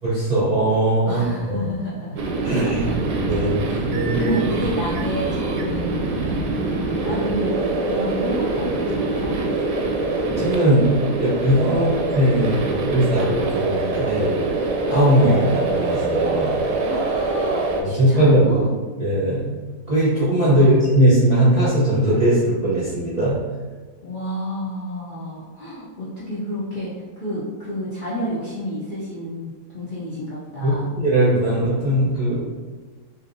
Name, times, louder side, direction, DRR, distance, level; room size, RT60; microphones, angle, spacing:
voice 1, 0.0-1.6 2.4-2.8 3.1-4.4 10.4-16.6 17.8-18.4 19.0-19.6 19.9-23.4 30.6-32.4, right 1 dB, 35° right, -9 dB, 0.7 m, -19 dB
voice 2, 1.1-2.2 3.3-6.5 7.0-9.9 11.7-11.9 16.8-18.7 20.5-20.8 24.0-30.9, equal, 80° left, -9 dB, 0.4 m, -30 dB
sound 1, 2.2-17.8, right 2 dB, 80° right, 1.2 m, -24 dB
3.4 x 2.7 x 2.6 m, 1.4 s
omnidirectional pair, 1.8 m